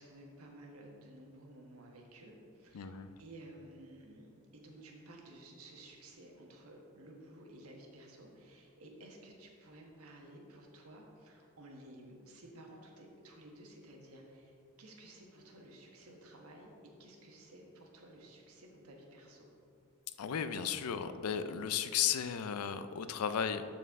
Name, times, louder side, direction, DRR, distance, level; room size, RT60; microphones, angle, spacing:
voice 1, 0.0-16.7 17.0-19.5, right 1 dB, 70° right, 0 dB, 1.3 m, -54 dB
voice 2, 2.7-3.1 20.2-23.6, left 8 dB, 75° left, 11 dB, 0.4 m, -34 dB
12.5 x 4.3 x 3.6 m, 2.5 s
head